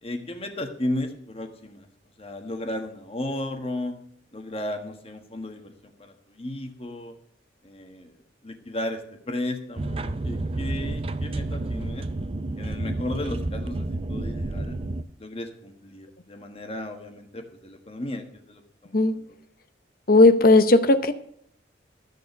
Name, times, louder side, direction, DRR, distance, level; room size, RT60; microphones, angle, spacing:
voice 1, 0.0-1.9 2.2-3.9 4.3-5.7 6.0-7.1 7.6-12.1 12.6-14.8 15.2-19.3, left 1 dB, 30° left, 5 dB, 1.4 m, -34 dB
sound 1, 9.8-15.0, right 2 dB, 30° right, 0.5 m, -30 dB
voice 2, 20.1-21.1, left 2 dB, 50° left, 11 dB, 0.8 m, -16 dB
13.0 x 6.8 x 5.9 m, 0.67 s
head